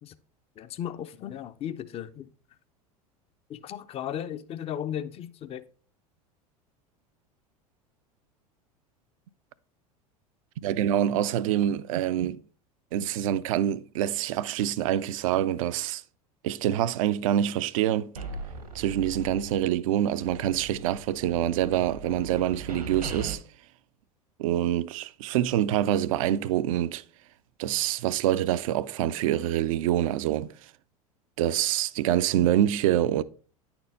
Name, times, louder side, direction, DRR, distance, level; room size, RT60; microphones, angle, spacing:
voice 1, 0.6-2.3 3.5-5.6, left 10 dB, 30° left, 0.5 m, -35 dB
voice 2, 10.6-12.4 12.9-16.0 16.4-18.1 18.7-23.4 24.4-27.0 27.6-30.7 31.4-33.2, right 11 dB, 60° right, 0.4 m, -26 dB
sound 1, 18.2-19.8 20.1-23.3, right 2 dB, 85° right, 1.2 m, -39 dB
9.7 x 4.4 x 4.0 m
figure-of-eight pair, 80°, 20 cm